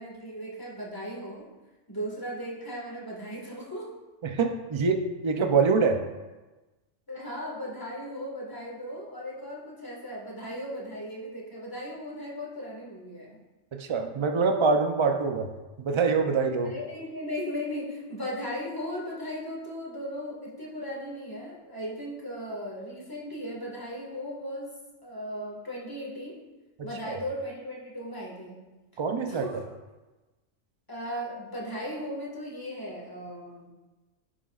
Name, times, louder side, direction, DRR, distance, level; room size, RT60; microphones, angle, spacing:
voice 1, 0.0-1.4 1.9-3.9 7.1-13.4 16.6-24.7 25.0-26.4 26.8-28.6 29.3-29.6 30.9-33.7, equal, 15° left, -4 dB, 1.8 m, -37 dB
voice 2, 4.2-6.0 13.7-15.5 15.8-16.7 27.0-27.2 29.0-29.4, right 4 dB, 40° right, 5 dB, 0.4 m, -25 dB
11.0 x 5.9 x 2.4 m, 1.2 s
omnidirectional pair, 1.4 m